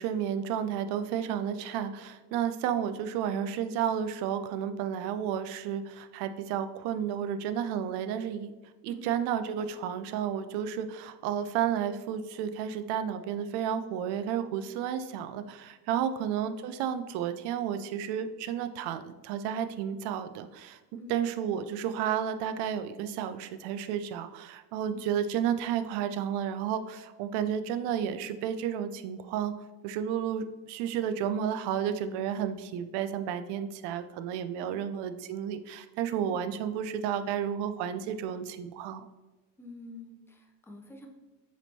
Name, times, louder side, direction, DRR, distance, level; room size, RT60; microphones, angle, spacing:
voice 1, 0.0-8.5 8.8-20.8 21.1-29.6 29.8-39.0, right 9 dB, 55° right, 10 dB, 0.5 m, -32 dB
voice 2, 39.6-41.1, left 3 dB, 5° left, 2 dB, 0.5 m, -48 dB
4.9 x 3.1 x 2.7 m, 1.1 s
hypercardioid pair, 55°, 49 cm